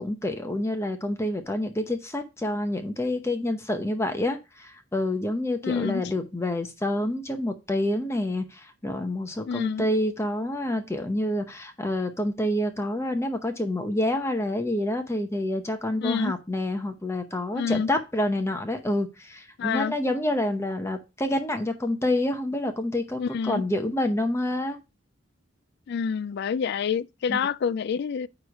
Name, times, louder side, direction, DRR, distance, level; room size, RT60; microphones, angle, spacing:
voice 1, 0.0-24.8 27.3-27.4, left 1 dB, 15° left, 0.8 m, -28 dB
voice 2, 5.6-6.0 9.5-9.8 16.0-16.3 17.5-17.9 19.6-19.9 23.2-23.6 25.9-28.3, left 6 dB, 55° left, 0.3 m, -27 dB
9.5 x 3.2 x 5.2 m
head